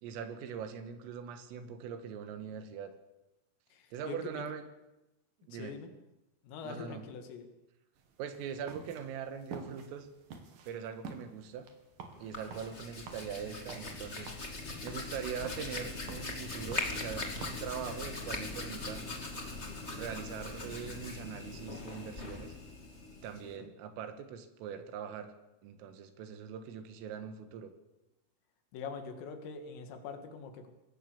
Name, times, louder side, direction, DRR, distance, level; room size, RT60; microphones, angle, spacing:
voice 1, 0.0-2.9 3.9-4.6 5.5-5.8 6.6-7.0 8.2-10.1 10.7-11.7 12.2-14.3 14.8-19.1 19.9-22.5 23.2-25.3 25.6-27.7, right 7 dB, 85° right, 9 dB, 4.3 m, -42 dB
voice 2, 3.7-4.5 5.5-5.9 6.4-7.5 23.4-23.7 28.7-30.7, left 5 dB, 85° left, 6 dB, 4.9 m, -44 dB
sound 1, 8.0-21.6, right 5 dB, 50° right, 3.3 m, -52 dB
Hands, 12.1-23.5, left 3 dB, 30° left, 1.1 m, -41 dB
23.5 x 18.0 x 7.1 m, 0.97 s
omnidirectional pair, 5.8 m